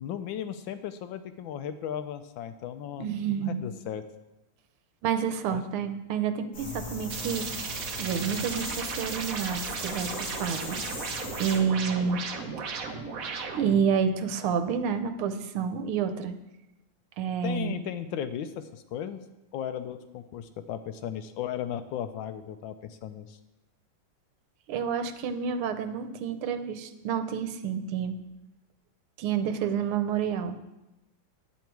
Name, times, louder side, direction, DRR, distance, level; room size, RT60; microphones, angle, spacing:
voice 1, 0.0-4.0 5.5-5.6 17.4-19.2 19.5-23.4, left 9 dB, 75° left, 10 dB, 1.2 m, -36 dB
voice 2, 3.0-3.6 5.0-7.5 8.0-10.8 11.4-12.2 13.6-16.3 17.2-17.8 24.7-28.2 29.2-30.6, right 7 dB, 90° right, 9 dB, 1.7 m, -29 dB
sound 1, 6.5-11.6, left 2 dB, 40° left, 3.5 m, -39 dB
sound 2, 7.1-13.8, right 5 dB, 55° right, 1.1 m, -35 dB
10.5 x 8.2 x 4.6 m, 0.97 s
omnidirectional pair, 2.3 m